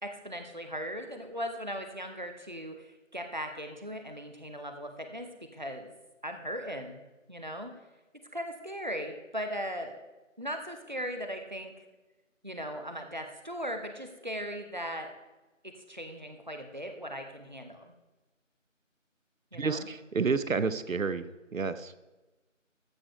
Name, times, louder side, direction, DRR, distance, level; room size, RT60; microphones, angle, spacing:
voice 1, 0.0-5.9 6.2-7.0 7.3-7.7 8.3-10.0 10.4-11.8 12.4-15.1 15.6-17.9 19.5-19.9, equal, 35° right, 6 dB, 0.7 m, -38 dB
voice 2, 19.5-21.3 21.5-22.0, right 4 dB, 85° right, 13 dB, 0.7 m, -30 dB
14.0 x 4.8 x 5.5 m, 1.1 s
figure-of-eight pair, 170°, 39 cm